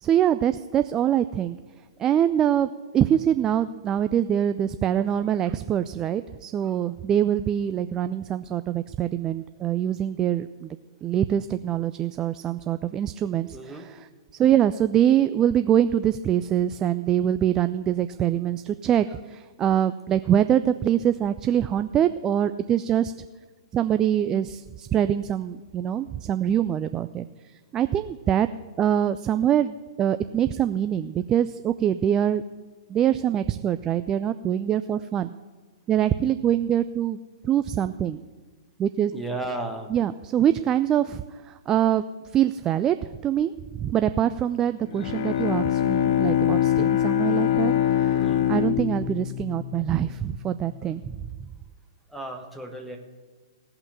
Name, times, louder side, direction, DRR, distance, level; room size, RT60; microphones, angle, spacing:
voice 1, 0.0-1.6 2.0-14.1 14.4-23.1 23.7-27.2 27.7-28.5 28.8-32.4 32.9-35.3 35.9-37.2 37.4-38.2 38.8-39.1 39.9-42.0 42.3-43.0 43.2-47.7 48.0-51.2, right 10 dB, 20° right, 10 dB, 0.3 m, -24 dB
voice 2, 13.5-13.9 39.1-39.9 48.1-48.5 52.1-53.0, right 2 dB, ahead, 1 dB, 1.5 m, -34 dB
Bowed string instrument, 44.8-50.4, left 11 dB, 45° left, 0.6 m, -24 dB
17.0 x 5.8 x 8.1 m, 1.4 s
figure-of-eight pair, 110°, 3 cm